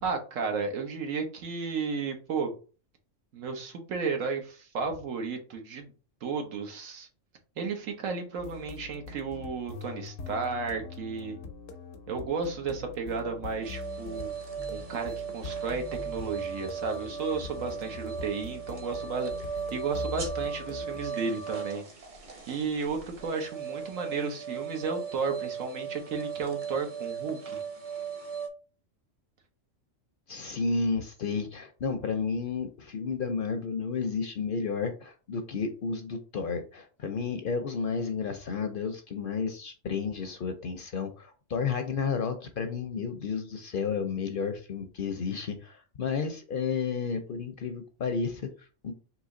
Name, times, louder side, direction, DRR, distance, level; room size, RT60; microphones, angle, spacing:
voice 1, 0.0-2.5 3.3-5.9 6.2-7.1 7.6-11.4 12.1-14.3 14.7-21.8 22.5-27.6, right 5 dB, 90° right, 4 dB, 1.4 m, -33 dB
sound 1, 8.4-21.1, left 4 dB, 80° left, 1.0 m, -43 dB
sound 2, 13.6-28.5, right 6 dB, 35° right, 0.6 m, -37 dB
sound 3, 20.1-25.2, right 2 dB, 60° right, 1.5 m, -49 dB
voice 2, 30.3-48.9, left 5 dB, 55° left, 7 dB, 0.6 m, -32 dB
4.1 x 3.0 x 3.7 m, 0.35 s
omnidirectional pair, 1.3 m